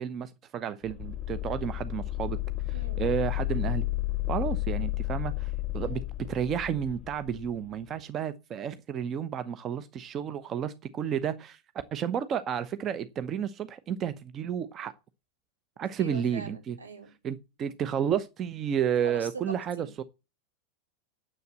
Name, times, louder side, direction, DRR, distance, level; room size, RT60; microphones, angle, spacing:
voice 1, 0.0-2.4 3.0-3.9 4.3-6.0 6.3-11.6 11.9-14.9 15.8-16.8 17.2-20.0, right 8 dB, 30° right, 0.8 m, -31 dB
sound 1, 0.8-7.5, left 17 dB, 25° left, 0.9 m, -32 dB
voice 2, 16.0-17.1 19.0-20.0, right 3 dB, 75° right, 4.6 m, -43 dB
9.4 x 7.7 x 7.4 m
figure-of-eight pair, 90°, 0 cm